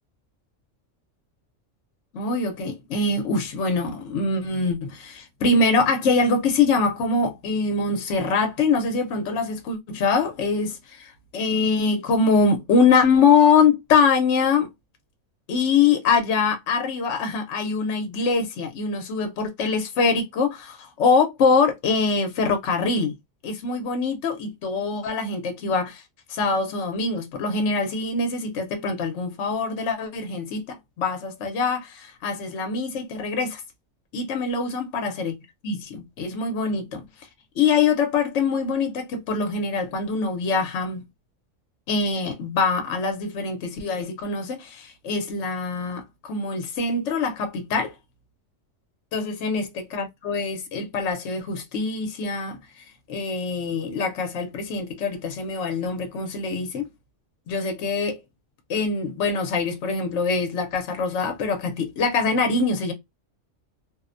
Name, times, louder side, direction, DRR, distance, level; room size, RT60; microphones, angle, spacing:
voice 1, 2.1-14.7 15.5-23.1 23.4-26.0 26.3-33.6 34.1-35.3 35.6-37.1 37.6-41.0 41.9-47.9 49.1-56.9 57.5-58.2 58.7-62.9, left 4 dB, 70° left, 0.9 m, -23 dB
2.5 x 2.0 x 2.4 m
omnidirectional pair, 1.3 m